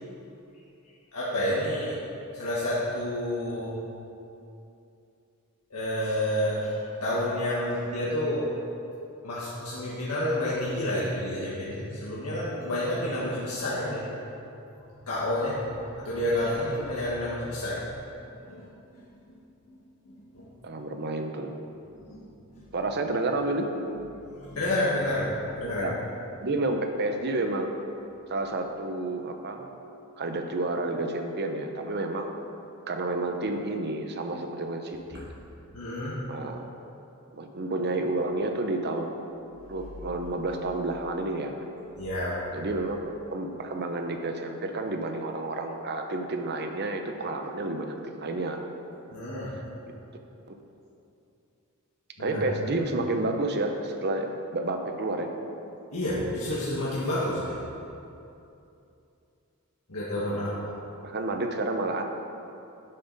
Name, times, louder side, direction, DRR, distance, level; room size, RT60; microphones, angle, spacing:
voice 1, 1.1-2.0 2.3-3.8 5.7-8.5 9.2-14.1 15.1-15.6 16.0-17.8 18.5-18.7 19.3-19.4 19.7-19.8 20.1-20.7 22.1-22.3 22.6-22.7 24.4-25.3 25.6-25.9 35.7-36.2 42.0-42.6 49.1-49.5 52.2-52.4 55.9-57.6 59.9-60.7, left 1 dB, 90° left, -8 dB, 1.6 m, -29 dB
voice 2, 20.6-21.5 22.7-24.1 25.8-25.9 26.4-27.7 28.3-29.7 30.2-32.3 32.9-35.2 36.3-36.7 37.4-39.3 39.7-41.5 42.5-48.6 50.5-50.6 52.2-55.3 60.2-60.5 61.0-62.0, right 2 dB, 50° right, 5 dB, 0.8 m, -30 dB
11.0 x 7.7 x 4.1 m, 2.7 s
head